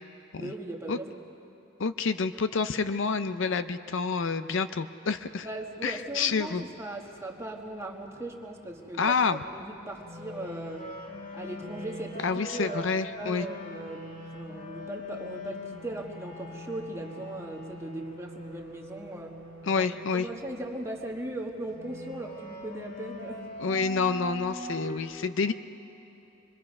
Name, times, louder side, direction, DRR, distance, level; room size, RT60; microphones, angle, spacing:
voice 1, 0.3-1.2 5.4-10.9 11.3-14.1 14.3-19.4 19.8-19.9 20.1-23.4, right 2 dB, 15° right, 0 dB, 1.4 m, -38 dB
voice 2, 1.8-5.5 5.8-6.7 9.0-9.4 12.2-13.5 19.6-20.3 23.6-25.5, left 5 dB, 60° left, 11 dB, 0.5 m, -28 dB
sound 1, 5.1-25.0, left 1 dB, 40° left, 2.4 m, -43 dB
25.5 x 22.0 x 5.4 m, 2.9 s
head